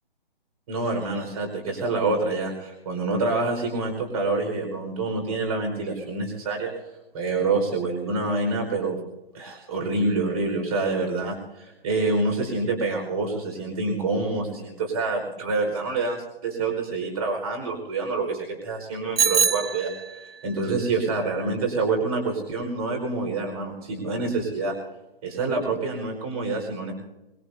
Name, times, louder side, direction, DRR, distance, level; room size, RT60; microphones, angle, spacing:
voice 1, 0.7-6.7 7.1-9.0 9.3-19.9 20.4-24.7 25.2-26.9, right 3 dB, 40° right, 2 dB, 5.0 m, -27 dB
Bicycle bell, 19.2-20.4, right 6 dB, 85° right, 0.8 m, -24 dB
25.0 x 20.5 x 2.8 m, 0.98 s
hypercardioid pair, 155°, 29 cm